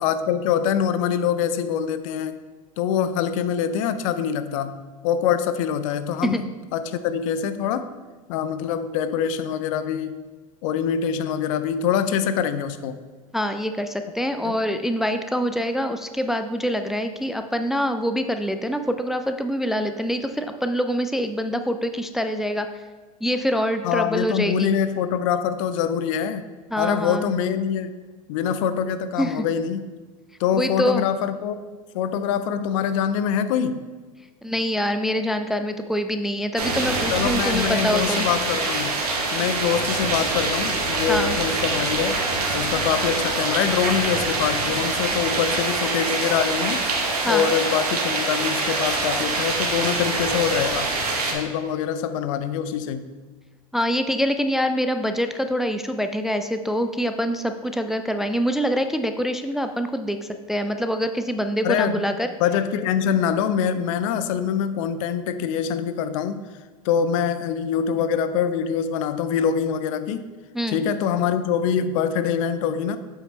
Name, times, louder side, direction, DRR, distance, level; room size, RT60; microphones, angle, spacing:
voice 1, 0.0-2.4 2.8-7.9 8.3-10.1 10.6-13.0 14.4-14.6 23.8-26.5 26.8-28.0 28.3-29.9 30.4-31.6 31.9-33.8 37.1-39.0 39.3-42.2 42.5-46.9 47.2-50.9 51.3-53.1 61.6-62.1 62.4-66.4 66.8-70.3 70.7-73.0, left 8 dB, 60° left, 11 dB, 0.6 m, -24 dB
voice 2, 13.3-22.7 23.2-24.7 26.7-27.3 29.2-29.5 30.6-31.1 34.4-38.3 41.1-41.4 47.2-47.5 53.7-60.2 60.5-62.3 70.5-70.8, equal, ahead, 7 dB, 0.4 m, -25 dB
sound 1, 36.6-51.3, right 3 dB, 80° right, 1.4 m, -25 dB
8.0 x 5.6 x 3.2 m, 1.3 s
hypercardioid pair, 85°, 19 cm